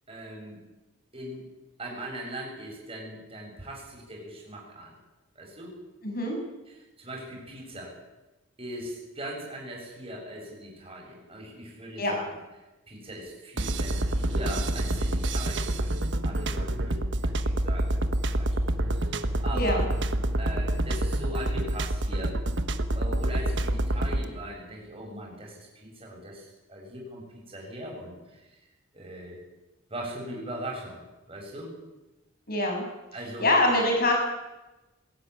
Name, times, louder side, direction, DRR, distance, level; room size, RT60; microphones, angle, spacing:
voice 1, 0.1-0.6 1.1-1.4 1.8-4.9 5.4-5.7 6.7-7.9 8.6-12.4 12.9-18.5 18.9-19.0 19.4-19.8 20.4-22.3 22.9-28.4 28.9-29.4 29.9-31.7 33.1-33.5, right 1 dB, 25° right, -1 dB, 7.3 m, -40 dB
voice 2, 6.0-6.3 12.0-12.1 19.5-19.9 32.5-32.9 33.4-34.1, left 1 dB, 45° left, 2 dB, 6.6 m, -24 dB
sound 1, 13.6-24.3, right 1 dB, 60° right, 1.3 m, -27 dB
21.5 x 13.0 x 9.8 m, 1.0 s
head